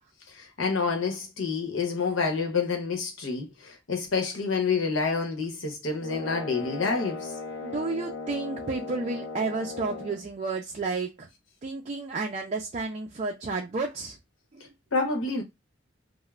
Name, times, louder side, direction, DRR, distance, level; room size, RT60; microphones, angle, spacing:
voice 1, 0.3-7.3 14.9-15.4, left 4 dB, 80° left, 0.9 m, -28 dB
sound 1, 6.0-10.3, left 3 dB, 60° left, 0.6 m, -37 dB
voice 2, 7.6-11.3 11.6-14.2 14.5-14.7, right 3 dB, 35° right, 0.4 m, -31 dB
2.3 x 2.1 x 3.1 m
head